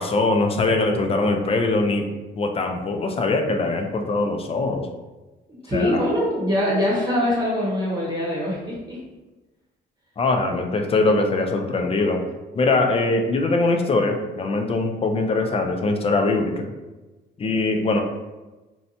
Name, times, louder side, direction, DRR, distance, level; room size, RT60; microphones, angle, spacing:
voice 1, 0.0-2.1 2.4-4.9 5.7-6.0 10.2-12.2 12.5-16.7 17.4-18.0, left 3 dB, 30° left, 4 dB, 0.4 m, -22 dB
voice 2, 5.6-9.0, left 1 dB, 20° right, -6 dB, 0.9 m, -23 dB
2.6 x 2.1 x 2.7 m, 1.1 s
cardioid pair, 90°, 20 cm